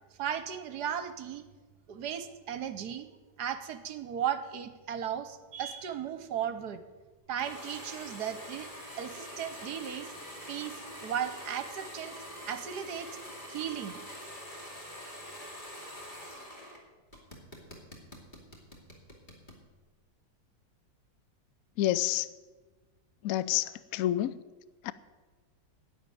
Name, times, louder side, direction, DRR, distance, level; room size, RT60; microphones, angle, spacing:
voice 1, 0.2-1.4 1.9-3.1 3.4-6.8 7.3-8.7 9.0-10.1 10.5-12.2 12.5-13.1 13.5-14.0, right 9 dB, 65° right, 1.4 m, -36 dB
sound 1, 7.4-16.8 17.1-19.6, equal, 25° left, 2.6 m, -45 dB
voice 2, 21.8-22.3 23.2-24.3 24.8-24.9, left 14 dB, 75° left, 0.8 m, -28 dB
11.0 x 9.5 x 9.2 m
omnidirectional pair, 1.9 m